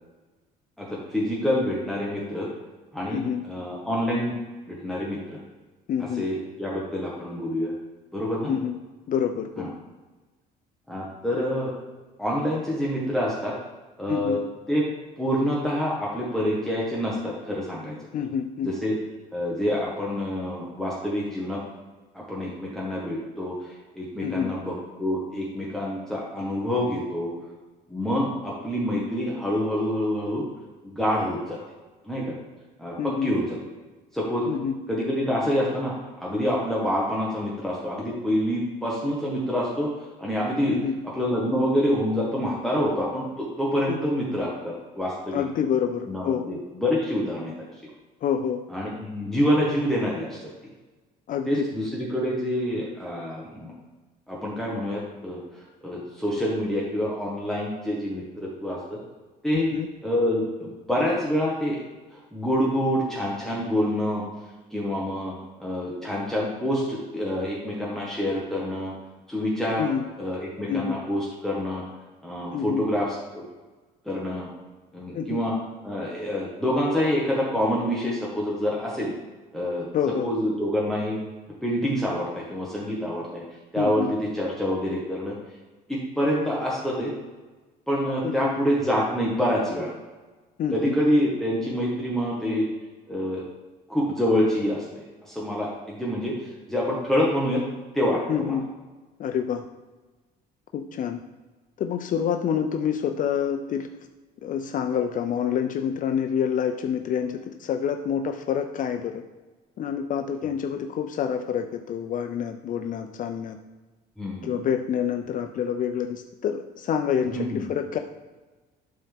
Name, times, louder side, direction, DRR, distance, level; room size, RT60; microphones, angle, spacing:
voice 1, 0.8-2.5 2.9-4.3 4.7-5.4 6.0-7.7 8.1-8.5 9.6-9.7 10.9-11.7 12.2-13.5 14.0-14.4 14.7-14.9 15.2-18.0 18.6-19.0 19.3-21.6 22.1-23.6 23.9-27.3 27.9-30.4 30.8-31.6 32.0-32.3 32.8-33.6 34.1-34.4 34.9-40.8 41.1-45.4 46.1-47.5 48.7-50.5 51.4-53.7 54.3-59.0 59.4-59.7 60.0-61.8 62.1-64.2 64.7-68.9 69.3-69.9 70.2-71.8 72.2-73.4 74.0-74.5 74.9-75.5 75.8-79.1 79.5-79.9 80.2-81.2 81.6-83.4 83.7-85.3 85.9-87.1 87.9-89.9 90.7-92.7 93.1-93.4 93.9-94.8 95.2-97.6 97.9-98.6 114.2-114.7 117.3-117.6, equal, ahead, -5 dB, 1.6 m, -27 dB
voice 2, 3.1-3.4 5.9-6.3 8.5-8.7 9.1-9.7 14.1-14.4 18.1-18.7 24.2-24.5 33.0-33.3 34.5-34.8 40.7-40.9 43.9-44.0 45.3-46.4 48.2-48.6 51.3-51.6 59.5-59.9 69.8-70.1 70.7-71.0 72.5-72.8 75.1-75.4 79.9-80.3 83.8-84.1 88.2-88.6 90.6-91.0 98.3-98.7 99.2-99.6 100.7-101.2 101.8-103.9 104.4-109.2 109.8-113.6 114.4-118.0, left 8 dB, 50° left, 6 dB, 0.5 m, -27 dB
11.5 x 4.2 x 3.6 m, 1.3 s
cardioid pair, 110°, 17 cm